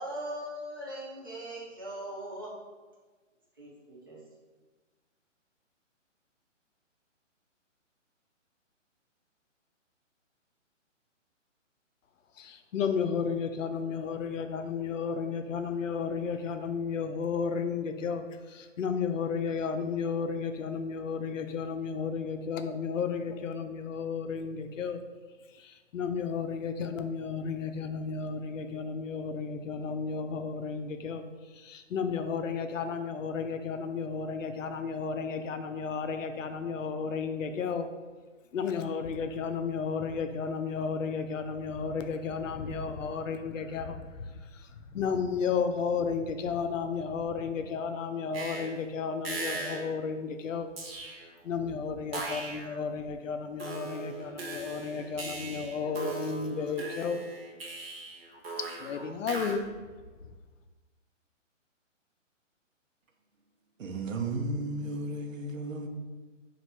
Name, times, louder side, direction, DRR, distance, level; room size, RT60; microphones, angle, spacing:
voice 1, 0.0-2.5 3.6-4.2, right 1 dB, 20° right, 0.5 m, -40 dB
voice 2, 12.3-25.0 25.5-37.9 38.5-50.7 51.0-57.2 58.8-59.6, left 5 dB, 75° left, 0.5 m, -33 dB
sound 1, 48.3-48.8 49.2-49.9 50.8-51.4 52.1-52.8 53.6-59.5, right 3 dB, 50° right, 0.8 m, -39 dB
voice 3, 63.8-65.9, right 2 dB, 90° right, 0.8 m, -34 dB
3.1 x 2.6 x 4.3 m
hypercardioid pair, 160°, 38 cm